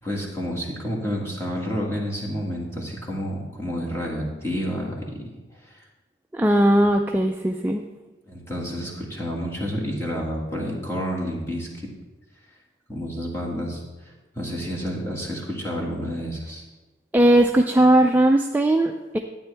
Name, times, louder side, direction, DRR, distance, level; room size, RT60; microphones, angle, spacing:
voice 1, 0.0-5.2 5.6-5.8 8.3-11.9 12.9-13.8 14.4-16.6, equal, 15° left, -4 dB, 2.0 m, -29 dB
voice 2, 6.3-7.8 17.1-19.2, right 1 dB, 10° right, 3 dB, 0.3 m, -18 dB
12.0 x 9.0 x 3.4 m, 1.2 s
head